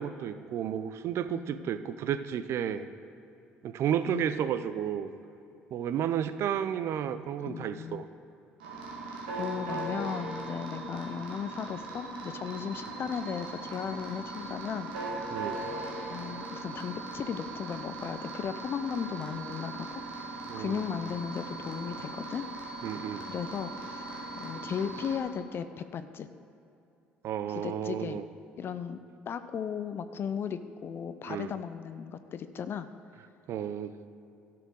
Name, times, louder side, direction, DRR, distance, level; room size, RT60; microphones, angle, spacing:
voice 1, 0.0-2.9 3.6-5.1 5.7-8.1 15.3-15.6 20.5-20.8 22.8-23.2 27.2-28.2 31.3-31.5 33.5-33.9, right 9 dB, 60° right, 12 dB, 0.6 m, -32 dB
voice 2, 1.3-1.7 4.1-4.4 7.4-8.0 9.4-14.9 16.1-22.4 23.2-24.1 24.4-26.3 27.5-28.2 28.6-29.0 29.3-32.9, left 7 dB, 50° left, 11 dB, 0.5 m, -36 dB
sound 1, 8.6-25.2, right 2 dB, 85° right, 1.9 m, -39 dB
12.5 x 6.0 x 6.3 m, 2.7 s
hypercardioid pair, 60°, 5 cm